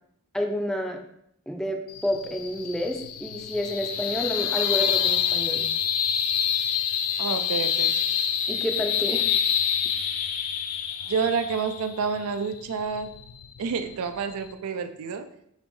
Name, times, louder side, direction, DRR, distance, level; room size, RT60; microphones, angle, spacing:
voice 1, 0.3-1.0 1.5-5.7 8.5-9.3, equal, ahead, 3 dB, 0.4 m, -29 dB
sound 1, 1.9-14.5, left 8 dB, 90° left, 0.4 m, -27 dB
voice 2, 7.2-8.0 11.1-13.1 13.6-15.3, right 5 dB, 90° right, 10 dB, 0.4 m, -29 dB
4.1 x 3.8 x 3.1 m, 0.73 s
head